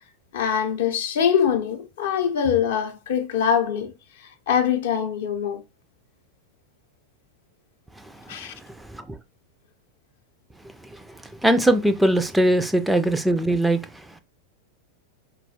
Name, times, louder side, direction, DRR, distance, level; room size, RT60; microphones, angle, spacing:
voice 1, 0.3-3.9 4.2-5.6 8.3-8.5, left 8 dB, 55° left, 0.6 m, -23 dB
voice 2, 8.0-9.2 10.6-14.2, right 1 dB, 5° right, 0.3 m, -23 dB
4.1 x 2.2 x 2.7 m
figure-of-eight pair, 90°, 0 cm